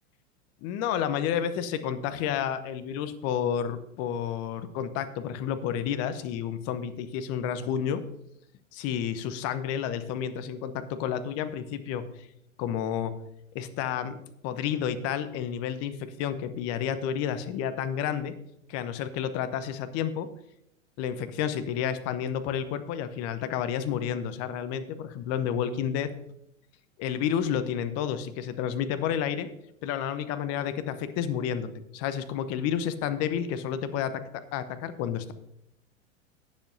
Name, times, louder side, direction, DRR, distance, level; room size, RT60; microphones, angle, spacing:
voice 1, 0.6-8.0 8.7-12.3 12.6-13.1 13.5-14.2 14.4-18.3 18.7-20.3 21.0-26.1 27.0-29.5 29.8-35.3, left 9 dB, 40° left, 12 dB, 1.0 m, -30 dB
17.5 x 7.3 x 2.7 m, 0.78 s
hypercardioid pair, 100°, 38 cm